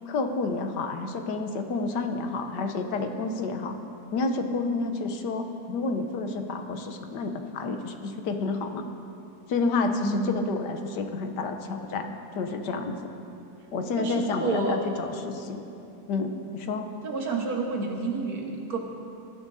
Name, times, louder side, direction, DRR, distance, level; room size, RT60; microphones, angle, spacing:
voice 1, 0.1-3.8 4.1-8.8 9.5-13.1 13.7-15.6 16.1-16.9, left 3 dB, 85° left, 6 dB, 1.5 m, -30 dB
voice 2, 9.9-10.4 14.0-14.8 17.0-18.8, right 3 dB, 60° right, 0 dB, 1.8 m, -30 dB
19.5 x 13.0 x 2.7 m, 2.8 s
omnidirectional pair, 1.8 m